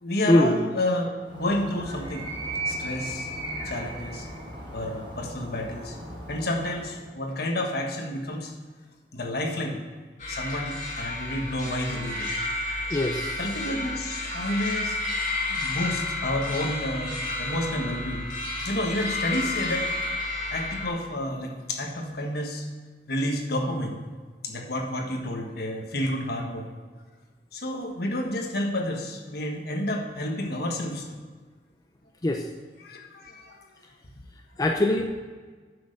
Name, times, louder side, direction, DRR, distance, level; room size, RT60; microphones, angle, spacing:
voice 1, 0.0-2.3 2.7-3.3 3.6-4.3 4.7-6.0 6.3-8.5 9.1-9.8 10.3-12.3 12.6-12.8 13.4-15.0 15.5-18.3 18.6-19.9 20.5-22.7 23.1-24.0 24.4-26.7 27.5-31.1 32.8-33.7, left 1 dB, 60° left, 2 dB, 1.5 m, -30 dB
Animal, 1.2-7.1, right 1 dB, 30° right, 3.4 m, -36 dB
sound 1, 10.2-20.9, left 2 dB, 45° left, 2.7 m, -31 dB
voice 2, 12.9-13.3 32.2-32.4 34.6-35.0, left 1 dB, 20° left, 3 dB, 0.6 m, -21 dB
9.3 x 6.6 x 6.6 m, 1.5 s
head